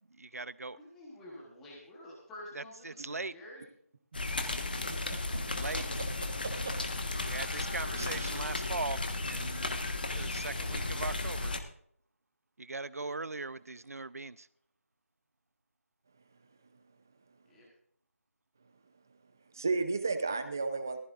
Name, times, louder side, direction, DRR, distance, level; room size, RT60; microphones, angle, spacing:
voice 1, 0.2-0.8 2.6-3.3 5.5-5.8 7.3-9.8 10.1-11.5 12.6-14.5, right 3 dB, 80° right, 17 dB, 0.6 m, -40 dB
voice 2, 0.7-3.6 17.5-17.7, left 1 dB, 5° left, -5 dB, 1.1 m, -50 dB
sound 1, 4.1-11.6, left 2 dB, 35° left, 1.3 m, -34 dB
voice 3, 4.9-5.2 6.6-6.7 8.0-8.3 19.5-21.0, right 3 dB, 15° right, 8 dB, 0.6 m, -33 dB
15.0 x 15.0 x 2.5 m, 0.66 s
figure-of-eight pair, 175°, 8 cm